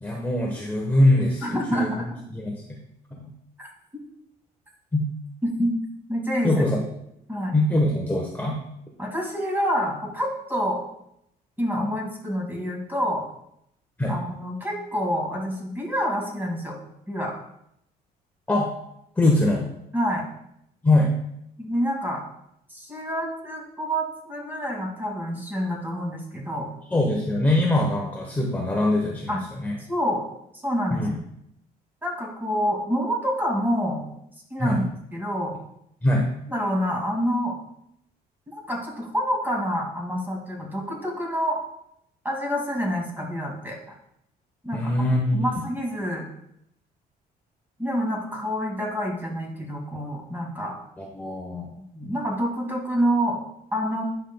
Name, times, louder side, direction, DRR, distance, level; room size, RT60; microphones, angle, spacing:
voice 1, 0.0-1.4 1.7-1.9 2.3-2.6 3.2-3.3 4.9-5.1 6.4-6.8 7.5-8.6 14.0-14.1 18.5-18.7 19.2-19.7 20.8-21.1 26.9-29.3 29.6-29.8 30.9-31.2 34.6-34.8 36.0-36.3 44.7-45.5 51.0-51.7, left 1 dB, 10° left, -1 dB, 1.0 m, -22 dB
voice 2, 1.4-2.2 3.6-3.7 5.4-5.7 6.1-6.6 7.3-7.6 9.0-10.8 11.6-13.3 14.1-16.8 17.1-17.3 19.9-20.2 21.6-22.2 22.7-26.7 29.3-29.4 29.9-30.2 30.6-31.1 32.0-34.0 34.5-34.8 35.1-35.5 36.5-37.6 38.5-41.6 42.2-43.9 44.6-46.3 47.8-50.8 51.9-53.4 53.7-54.0, equal, 10° right, -1 dB, 2.2 m, -27 dB
9.9 x 5.4 x 2.2 m, 0.77 s
cardioid pair, 110°, 17 cm